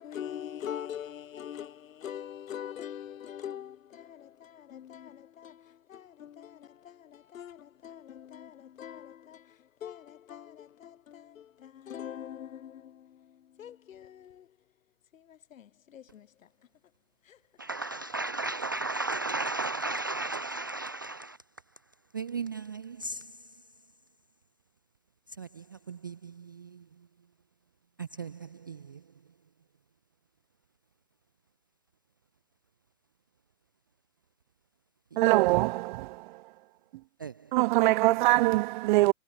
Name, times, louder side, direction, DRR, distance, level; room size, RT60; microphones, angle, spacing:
voice 1, 0.0-14.5 15.1-16.5 17.3-17.4 17.8-17.9, left 9 dB, 60° left, 7.5 m, -43 dB
voice 2, 17.6-21.4 22.1-23.2 25.4-25.5 25.9-26.1 28.0-28.3 28.7-28.8 35.5-35.6 37.2-37.3, right 3 dB, 15° right, 0.4 m, -34 dB
voice 3, 35.2-36.2 37.5-39.1, right 20 dB, 35° right, 1.7 m, -23 dB
hypercardioid pair, 150°, 43 cm